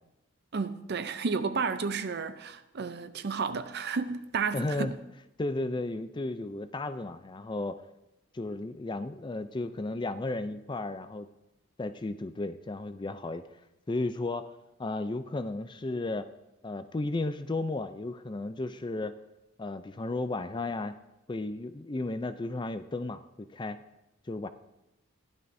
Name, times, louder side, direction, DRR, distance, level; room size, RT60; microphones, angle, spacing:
voice 1, 0.5-5.0, right 5 dB, 50° right, 0.6 m, -32 dB
voice 2, 4.5-4.9 5.4-7.8 8.3-11.3 11.8-13.5 13.9-14.5 14.8-16.3 16.6-19.2 19.6-21.0 21.3-23.8 24.3-24.5, left 2 dB, 20° left, 0.4 m, -34 dB
15.5 x 11.0 x 2.7 m
head